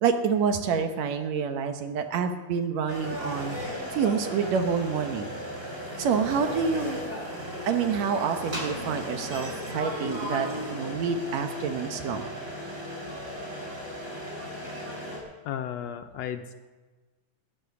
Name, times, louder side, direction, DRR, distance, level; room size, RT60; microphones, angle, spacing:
voice 1, 0.0-3.6 3.9-5.3 6.0-7.0 7.7-12.2, right 6 dB, 70° right, 7 dB, 2.1 m, -27 dB
sound 1, 2.9-15.2, equal, 20° right, 4.1 m, -36 dB
voice 2, 15.4-16.5, left 9 dB, 75° left, 8 dB, 1.7 m, -34 dB
16.0 x 9.9 x 6.9 m, 1.3 s
omnidirectional pair, 3.3 m